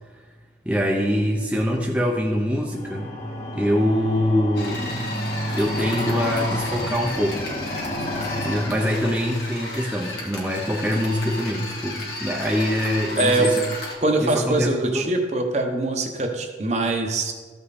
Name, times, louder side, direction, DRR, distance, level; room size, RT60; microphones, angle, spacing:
voice 1, 0.7-3.2 3.5-5.0 5.5-7.5 8.4-13.7 14.2-15.0, equal, 5° right, -1 dB, 0.6 m, -24 dB
sound 1, 2.7-9.7, equal, 45° left, 1.7 m, -31 dB
Electric Pepper Mill, 4.5-14.0, left 2 dB, 75° left, 2.3 m, -33 dB
voice 2, 13.2-13.5 14.0-17.3, right 2 dB, 40° right, 3 dB, 1.0 m, -23 dB
14.0 x 5.5 x 4.2 m, 1.4 s
head